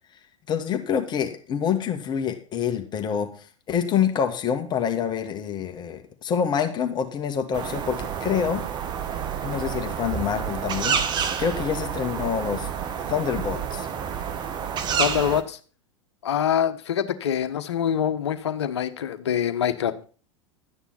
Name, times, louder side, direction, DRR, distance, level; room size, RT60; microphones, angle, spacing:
voice 1, 0.5-8.6 9.4-11.0 11.4-12.7 13.1-13.9, left 8 dB, 30° left, 5 dB, 1.8 m, -26 dB
sound 1, 7.5-15.4, right 7 dB, 30° right, 1.5 m, -29 dB
voice 2, 15.0-15.6 16.2-19.9, left 9 dB, 65° left, 9 dB, 1.4 m, -25 dB
12.5 x 9.5 x 4.3 m, 0.39 s
figure-of-eight pair, 90°, 16 cm